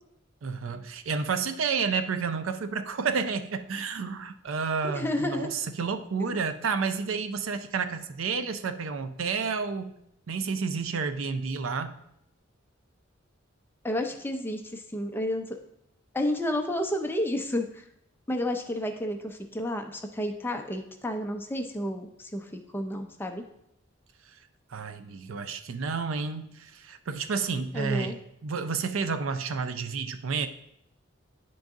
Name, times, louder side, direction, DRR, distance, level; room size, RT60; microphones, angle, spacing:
voice 1, 0.4-9.9 10.3-12.0 24.7-28.1 28.4-30.5, right 5 dB, 85° right, 0.5 m, -30 dB
voice 2, 4.9-5.5 6.2-6.3 13.8-15.6 16.1-17.8 18.3-23.4 27.7-28.2, left 1 dB, 10° left, 0.5 m, -31 dB
9.6 x 3.9 x 3.6 m
head